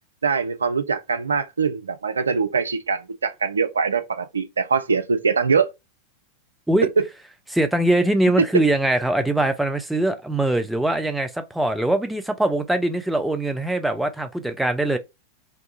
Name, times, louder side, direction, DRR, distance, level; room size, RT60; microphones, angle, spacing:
voice 1, 0.2-5.7 7.0-7.1, right 5 dB, 75° right, 0.4 m, -23 dB
voice 2, 7.5-15.0, right 1 dB, 5° right, 0.4 m, -22 dB
2.6 x 2.3 x 2.7 m
figure-of-eight pair, 90°, 0 cm